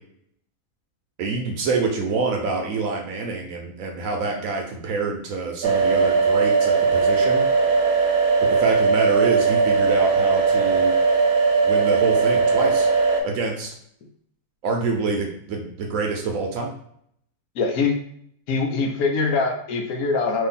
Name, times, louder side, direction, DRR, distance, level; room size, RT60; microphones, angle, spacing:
voice 1, 1.2-7.5 8.4-10.9 11.6-12.9 13.2-13.7 14.6-16.7, right 4 dB, 70° right, 1 dB, 0.9 m, -26 dB
sound 1, 5.6-13.2, right 4 dB, 85° right, 1.2 m, -19 dB
voice 2, 17.6-18.0 18.5-20.5, left 4 dB, 75° left, 3 dB, 1.0 m, -23 dB
2.8 x 2.6 x 3.9 m, 0.67 s
omnidirectional pair, 1.6 m